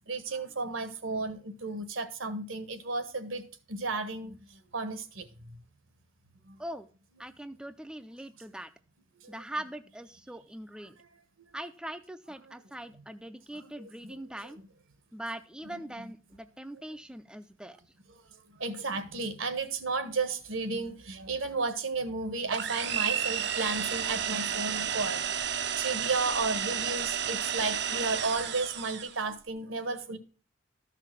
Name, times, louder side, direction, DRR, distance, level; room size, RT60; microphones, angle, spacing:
voice 1, 0.1-3.4 3.7-5.3 6.5-6.6 9.2-9.3 12.5-12.6 13.6-13.7 14.0-14.1 18.6-30.2, right 3 dB, 75° right, 1.5 m, -33 dB
voice 2, 7.2-8.7 9.3-11.0 11.5-14.6 15.1-17.8, right 1 dB, 5° right, 0.4 m, -41 dB
sound 1, 22.5-29.2, right 8 dB, 55° right, 0.7 m, -32 dB
13.0 x 5.8 x 6.1 m
head